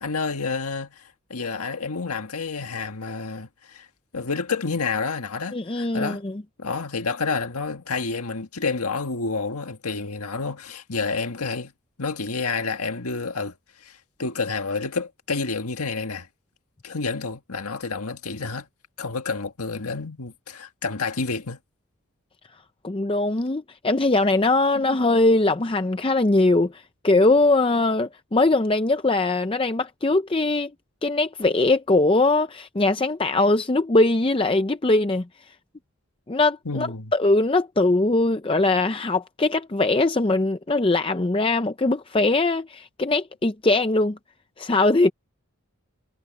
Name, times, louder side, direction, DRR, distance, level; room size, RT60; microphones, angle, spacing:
voice 1, 0.0-3.9 4.1-6.2 6.6-11.7 12.0-16.3 16.8-18.7 19.0-21.6 36.7-37.1, left 4 dB, 85° left, 1.8 m, -29 dB
voice 2, 5.5-6.3 22.8-30.7 31.0-35.3 36.3-44.2 44.6-45.1, left 2 dB, 25° left, 0.5 m, -21 dB
head